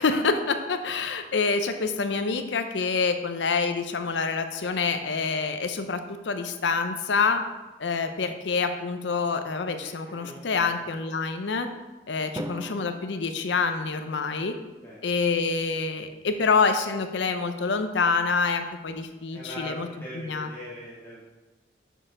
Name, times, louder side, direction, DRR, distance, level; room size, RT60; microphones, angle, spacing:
voice 1, 0.0-7.4 7.8-11.7 12.1-14.5 15.0-19.9 20.1-20.5, left 4 dB, 75° left, 8 dB, 0.6 m, -26 dB
voice 2, 10.2-10.7 14.8-15.0 19.3-21.3, equal, 15° left, -10 dB, 2.1 m, -41 dB
Drum, 12.4-14.5, right 1 dB, 20° right, 0.4 m, -40 dB
6.8 x 6.4 x 3.8 m, 1.1 s
head